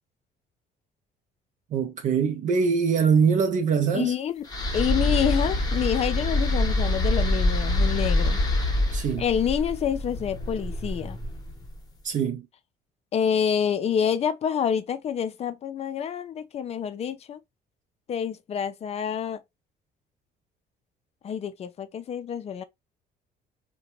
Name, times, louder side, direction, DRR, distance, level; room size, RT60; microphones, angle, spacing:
voice 1, 1.7-4.1 8.9-9.2 12.0-12.4, right 6 dB, 50° right, 0.5 m, -23 dB
voice 2, 3.9-4.5 4.7-8.4 9.2-11.2 13.1-17.4 18.1-19.4 21.2-22.6, left 8 dB, 40° left, 0.4 m, -27 dB
sound 1, 4.5-11.7, left 2 dB, 20° left, 0.9 m, -25 dB
2.8 x 2.2 x 2.9 m
cardioid pair, 110°, 17 cm